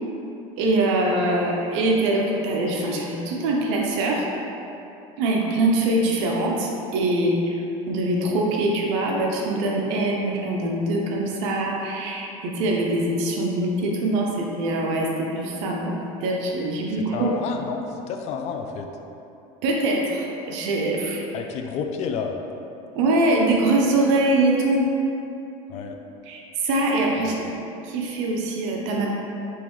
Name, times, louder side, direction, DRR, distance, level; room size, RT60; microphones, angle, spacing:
voice 1, 0.6-4.2 5.2-7.6 7.9-17.3 19.6-21.3 23.0-24.9 26.3-27.5 27.8-29.1, right 2 dB, 80° right, -1 dB, 0.6 m, -23 dB
voice 2, 17.1-18.9 21.3-22.4 25.7-26.0 27.2-27.3, left 6 dB, 45° left, 4 dB, 0.4 m, -30 dB
3.7 x 2.9 x 3.0 m, 2.8 s
supercardioid pair, 130°, 15 cm